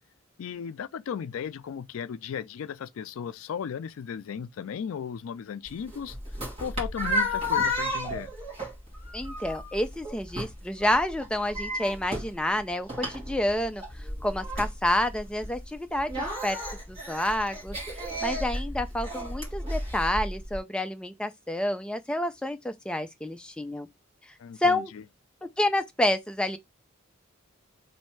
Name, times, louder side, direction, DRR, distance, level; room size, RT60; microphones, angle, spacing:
voice 1, 0.4-6.2 6.6-8.3 24.4-25.0, left 7 dB, 85° left, 0.4 m, -36 dB
sound 1, 5.7-20.6, left 1 dB, 30° right, 1.7 m, -33 dB
voice 2, 9.1-16.6 16.9-23.9 24.6-24.9 25.6-26.6, left 1 dB, 5° left, 0.4 m, -29 dB
3.2 x 2.7 x 4.4 m
head